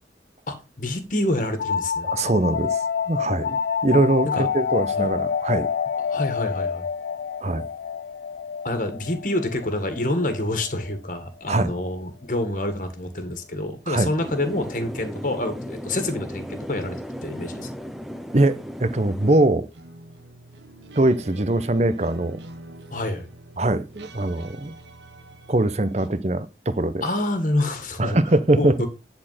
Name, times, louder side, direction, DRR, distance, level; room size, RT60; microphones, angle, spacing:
voice 1, 0.5-2.1 4.2-4.5 4.9-5.1 6.1-6.9 8.6-17.0 17.2-17.7 22.9-23.3 27.0-28.2 28.6-28.9, left 1 dB, 45° left, 1.9 m, -27 dB
sound 1, 1.6-11.0, left 7 dB, 70° left, 0.4 m, -28 dB
voice 2, 2.0-2.8 3.1-5.7 7.4-7.7 11.5-11.7 13.9-14.1 18.3-19.7 21.0-22.4 23.6-24.7 25.5-27.0 28.0-28.8, right 2 dB, 40° right, 0.8 m, -22 dB
sound 2, 14.2-19.4, equal, ahead, 0.5 m, -35 dB
sound 3, 19.7-26.1, right 2 dB, 85° right, 1.2 m, -45 dB
10.5 x 4.4 x 5.8 m
head